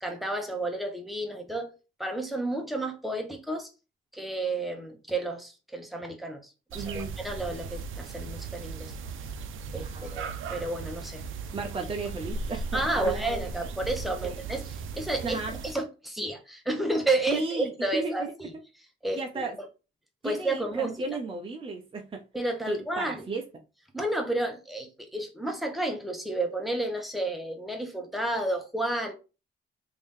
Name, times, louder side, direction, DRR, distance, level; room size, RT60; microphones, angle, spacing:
voice 1, 0.0-1.7 2.0-3.7 4.1-8.9 9.7-11.2 12.7-18.5 19.0-19.4 20.2-21.0 22.3-23.2 23.9-29.1, right 2 dB, ahead, 0.9 m, -31 dB
voice 2, 6.7-7.2 9.8-10.2 11.5-13.4 14.2-14.4 15.2-15.5 17.3-18.5 19.1-19.6 20.2-22.2 22.7-23.5, right 3 dB, 25° right, 0.5 m, -34 dB
sound 1, 6.7-15.7, right 4 dB, 80° right, 0.5 m, -37 dB
3.4 x 2.7 x 3.6 m
cardioid pair, 105°, 20 cm